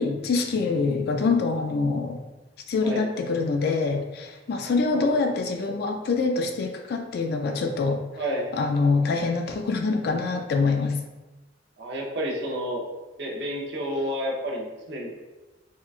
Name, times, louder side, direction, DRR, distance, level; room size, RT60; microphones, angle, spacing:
voice 1, 0.0-2.2 2.7-8.0 8.5-11.0, left 4 dB, 55° left, 4 dB, 0.3 m, -25 dB
voice 2, 4.6-5.1 8.1-8.6 11.8-12.8 13.2-15.1, equal, 60° right, -2 dB, 0.6 m, -30 dB
3.6 x 2.2 x 2.4 m, 1.1 s
head